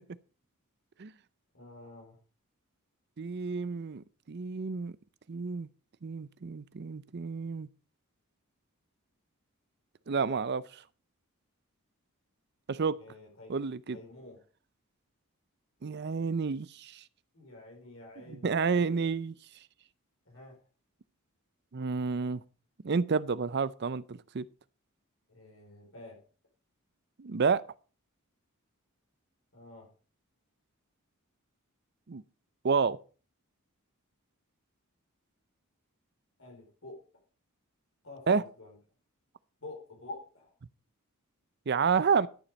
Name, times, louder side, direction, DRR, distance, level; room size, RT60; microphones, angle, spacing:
voice 1, 1.5-2.2 13.0-13.5 13.9-14.4 17.3-19.0 20.3-20.6 25.3-26.2 29.5-29.9 36.4-37.0 38.0-38.8 39.6-40.5, left 2 dB, 65° left, 4.4 m, -48 dB
voice 2, 3.2-4.9 5.3-5.7 6.0-7.7 10.1-10.6 12.7-13.0 13.5-14.0 15.8-17.0 18.4-19.3 21.7-22.4 22.8-24.5 27.2-27.6 32.1-32.2 32.6-33.0 38.3-38.4 41.7-42.3, right 5 dB, 50° right, 0.5 m, -30 dB
12.0 x 7.1 x 5.2 m
head